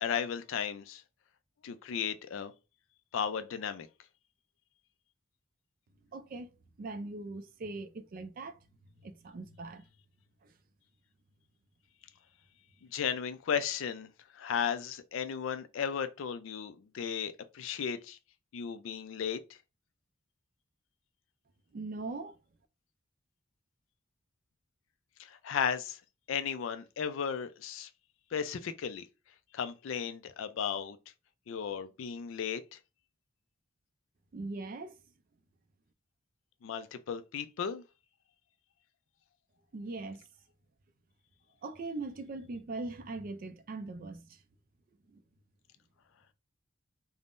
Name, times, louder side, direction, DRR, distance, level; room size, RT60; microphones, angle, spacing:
voice 1, 0.0-1.0 1.6-2.5 3.1-3.9 12.9-14.1 14.3-18.2 18.5-19.4 25.2-26.0 26.3-27.9 28.3-29.1 29.5-31.0 31.5-32.8 36.6-37.8, left 7 dB, 70° left, 0.4 m, -35 dB
voice 2, 6.1-6.5 6.8-8.6 9.0-9.8 10.4-10.5 21.7-22.4 34.3-35.0 39.7-40.2 41.6-44.4 45.1-45.2, right 3 dB, 40° right, 0.3 m, -41 dB
3.5 x 2.0 x 2.4 m
head